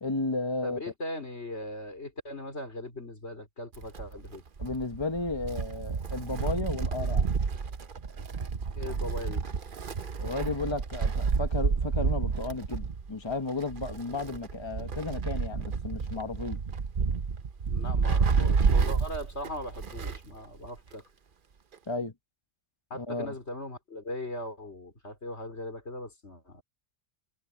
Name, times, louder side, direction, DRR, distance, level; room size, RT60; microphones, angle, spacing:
voice 1, 0.0-0.8 4.6-7.3 10.2-16.6 21.9-22.1 22.9-23.3, left 3 dB, 25° left, 1.2 m, -33 dB
voice 2, 0.6-4.4 8.7-9.4 17.7-21.0 22.9-26.6, left 1 dB, 70° left, 4.5 m, -39 dB
Wind, 3.7-20.3 20.6-20.7 21.7-21.8, right 5 dB, 50° right, 1.0 m, -30 dB
omnidirectional pair, 1.2 m